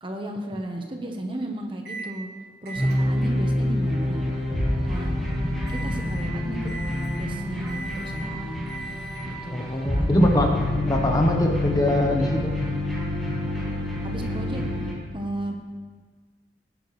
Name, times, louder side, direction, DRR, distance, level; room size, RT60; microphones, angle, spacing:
voice 1, 0.0-2.3 2.6-4.2 4.8-5.1 5.7-6.7 7.1-8.6 9.2-10.6 14.0-14.6 15.1-15.6, right 1 dB, 30° right, 3 dB, 1.1 m, -34 dB
Microwave oven, 1.9-2.1 2.7-9.5, right 3 dB, 65° right, 1.9 m, -40 dB
sound 1, 2.7-14.9, left 1 dB, ahead, 2.9 m, -27 dB
voice 2, 9.5-12.5, left 1 dB, 20° left, 2 dB, 1.1 m, -23 dB
17.5 x 10.5 x 3.3 m, 1.5 s
head